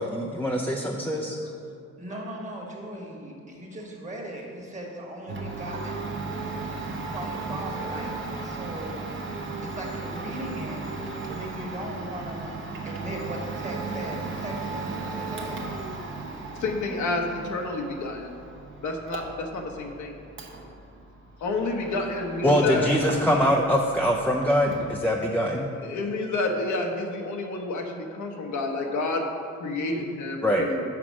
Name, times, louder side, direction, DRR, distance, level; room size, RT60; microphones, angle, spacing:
voice 1, 0.0-1.4 22.4-25.7 30.4-30.7, equal, 5° left, -1 dB, 0.5 m, -23 dB
voice 2, 1.2-1.6 2.0-6.1 6.8-8.1 8.4-9.0 9.6-15.7, right 1 dB, 25° right, -1 dB, 1.5 m, -38 dB
Domestic sounds home sounds, 5.3-23.6 23.9-24.9, right 3 dB, 40° right, 1.0 m, -36 dB
voice 3, 16.6-18.4 18.8-20.1 21.4-22.9 25.8-29.2 29.6-30.8, left 2 dB, 75° left, 2 dB, 1.0 m, -29 dB
5.9 x 4.9 x 6.1 m, 2.4 s
cardioid pair, 90°, 30 cm